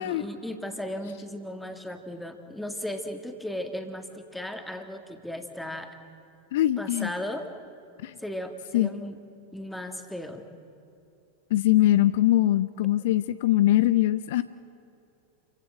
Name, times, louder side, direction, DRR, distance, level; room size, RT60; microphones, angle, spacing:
voice 1, 0.0-6.0 6.8-7.5 8.2-9.2 9.5-10.5, left 1 dB, 5° left, 6 dB, 1.7 m, -36 dB
voice 2, 6.5-7.1 8.0-8.2 8.7-8.9 11.5-14.4, left 14 dB, 55° left, 15 dB, 0.4 m, -22 dB
28.0 x 16.0 x 7.6 m, 2.7 s
figure-of-eight pair, 90°, 0 cm